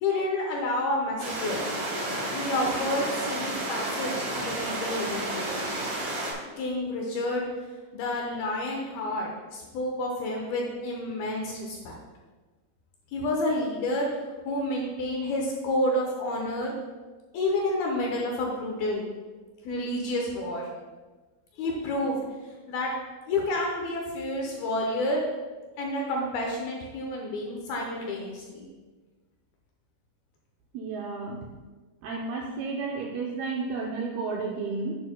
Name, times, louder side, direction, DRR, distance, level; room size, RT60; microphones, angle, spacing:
voice 1, 0.0-1.6 2.3-5.5 6.6-7.5 7.9-12.0 13.1-14.1 14.5-16.7 17.3-19.0 19.6-20.7 21.6-22.2 22.7-22.9 23.3-25.3 25.8-28.7, left 1 dB, 75° left, 0 dB, 2.4 m, -29 dB
sound 1, 1.2-6.3, right 1 dB, 60° right, 3.8 m, -31 dB
voice 2, 30.7-31.4 32.0-35.0, right 4 dB, 80° right, -1 dB, 2.3 m, -32 dB
10.5 x 8.9 x 2.2 m, 1.3 s
omnidirectional pair, 5.1 m